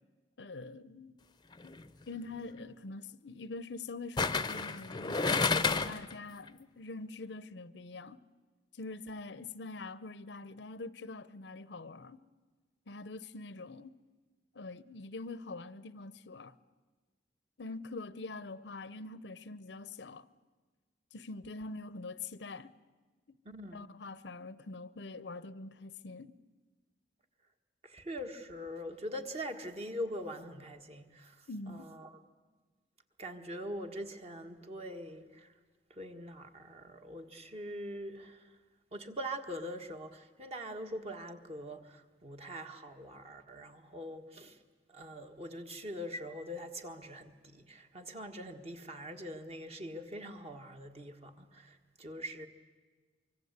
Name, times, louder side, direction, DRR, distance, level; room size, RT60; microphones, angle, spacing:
voice 1, 0.4-1.2 1.6-1.8 2.1-8.2 8.8-12.2 12.9-13.9 14.5-16.6 17.6-20.3 21.1-22.7 23.7-26.3 31.5-31.9, left 3 dB, 75° left, 0.7 m, -44 dB
sound 1, 1.5-1.8 4.2-6.1 6.5-6.6, left 4 dB, 25° left, 0.7 m, -30 dB
voice 2, 23.5-23.9 27.8-32.2 33.2-35.5 35.9-38.6 38.9-44.6 44.9-52.5, equal, 35° right, 1.6 m, -43 dB
24.5 x 24.0 x 8.1 m
head